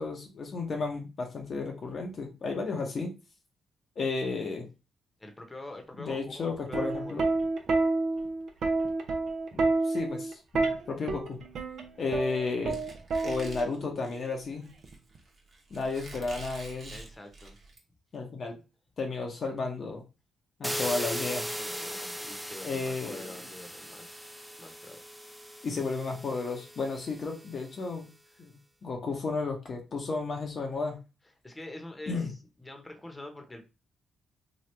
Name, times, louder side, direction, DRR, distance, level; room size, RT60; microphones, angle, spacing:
voice 1, 0.0-3.1 4.0-4.7 6.0-7.3 9.5-11.4 12.0-12.8 13.2-14.7 15.7-16.9 18.1-18.5 19.0-20.0 20.6-21.5 22.6-23.2 25.6-28.1 28.4-28.6 28.8-31.0 32.1-32.3, left 4 dB, 55° left, 1 dB, 0.7 m, -33 dB
voice 2, 5.2-7.2 16.9-17.6 21.6-24.3 24.6-25.3 28.3-28.4 31.4-33.6, left 2 dB, 20° left, 4 dB, 0.9 m, -45 dB
Plucked string instrument, 6.5-13.8 14.8-15.2, right 3 dB, 65° right, 0.6 m, -29 dB
Squeak, 12.7-17.8, right 3 dB, 50° right, 1.1 m, -47 dB
sound 1, 20.6-27.5, equal, 5° right, 0.4 m, -38 dB
2.9 x 2.4 x 3.2 m, 0.29 s
supercardioid pair, 50°, 0 cm